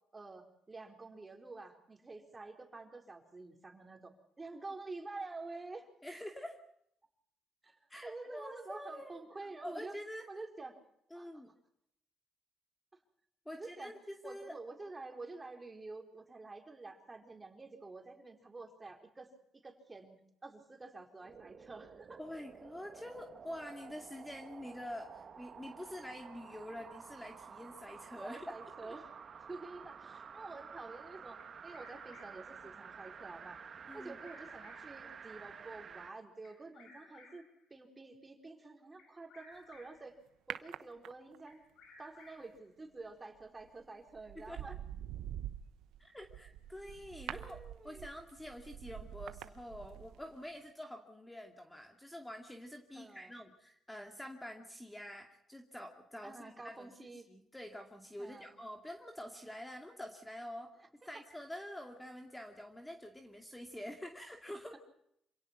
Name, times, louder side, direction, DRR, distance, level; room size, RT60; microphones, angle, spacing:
voice 1, 0.1-5.9 7.6-10.0 10.3-10.8 11.1-11.4 13.5-13.9 14.2-19.3 19.5-22.2 28.1-29.1 29.4-33.6 33.9-37.4 37.7-40.2 40.5-41.6 42.0-44.8 47.3-48.1 52.9-53.4 56.2-57.3 58.2-58.6 60.8-61.1, right 3 dB, 25° right, 4 dB, 4.3 m, -49 dB
voice 2, 6.0-6.6 7.9-9.2 9.6-10.3 11.1-11.5 13.5-14.6 22.2-28.5 28.8-28.9 33.9-34.2 44.4-44.6 46.0-47.6 47.8-56.9 57.3-60.8 61.1-64.8, left 1 dB, 10° left, 4 dB, 2.4 m, -47 dB
sound 1, 21.2-36.2 36.6-36.7, right 6 dB, 50° right, 1.6 m, -51 dB
Bird vocalization bird call bird song, 31.4-32.6 33.9-35.0 36.4-37.6 39.0-40.1 41.5-42.6, left 3 dB, 80° left, 5.5 m, -60 dB
sound 2, 40.5-41.5 43.4-43.7 44.1-50.3 50.6-50.7, right 11 dB, 90° right, 1.1 m, -46 dB
27.0 x 17.5 x 6.0 m, 0.74 s
cardioid pair, 90°, 0 cm